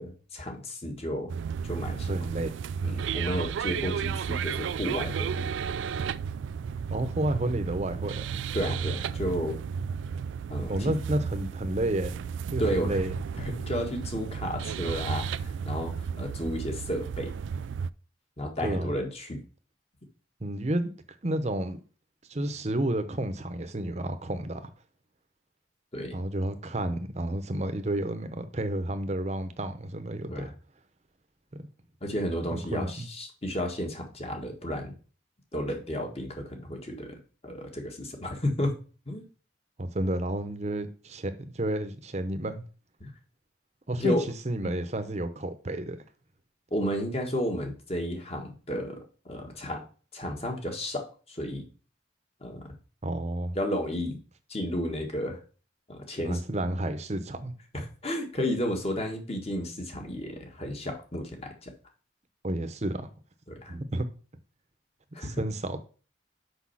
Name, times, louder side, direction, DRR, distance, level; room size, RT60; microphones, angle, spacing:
voice 1, 0.0-1.3 1.6-2.2 2.8-5.4 8.5-9.6 10.5-10.9 12.6-13.0 13.4-17.3 18.4-19.4 25.9-26.2 30.3-30.5 32.0-34.9 35.5-38.7 39.1-39.2 43.0-43.1 44.0-44.2 44.6-44.7 46.7-49.8 50.1-51.6 52.4-52.7 53.5-54.2 54.5-55.4 55.9-56.4 57.7-61.7 63.5-63.7 65.1-65.4, equal, 35° left, 1.6 m, -32 dB
sound 1, 1.3-17.9, right 6 dB, 85° right, 0.3 m, -33 dB
voice 2, 2.1-2.5 6.9-8.2 10.7-12.2 12.5-13.1 18.6-18.9 20.4-20.9 21.2-21.8 22.3-24.7 26.1-30.5 32.5-33.1 39.8-42.6 43.9-44.2 44.4-46.0 53.0-53.6 56.2-57.5 62.4-63.1 63.7-64.0 65.2-65.8, right 1 dB, 35° right, 0.9 m, -31 dB
6.2 x 5.5 x 5.6 m
head